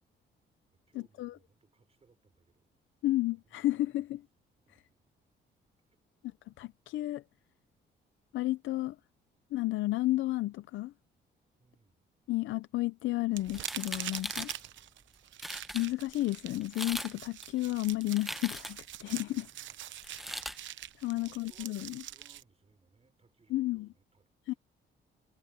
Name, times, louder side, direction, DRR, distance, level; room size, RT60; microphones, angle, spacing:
voice 1, 0.9-2.7 3.3-4.1 4.7-5.2 5.9-6.0 11.6-12.0 14.1-15.0 19.4-19.9 21.1-24.6, right 4 dB, 30° right, 5.8 m, -67 dB
voice 2, 3.0-4.2 6.6-7.2 8.3-9.0 9.5-10.9 12.3-14.5 15.7-19.5 21.0-22.0 23.5-23.9 24.5-24.6, left 17 dB, 80° left, 0.6 m, -32 dB
sound 1, 13.3-22.4, right 12 dB, 70° right, 0.9 m, -45 dB
sound 2, 13.5-14.6 15.1-15.2 15.4-15.9 16.6-17.1 17.4-18.9 20.0-20.6, equal, ahead, 0.8 m, -40 dB
cardioid pair, 90°, 20 cm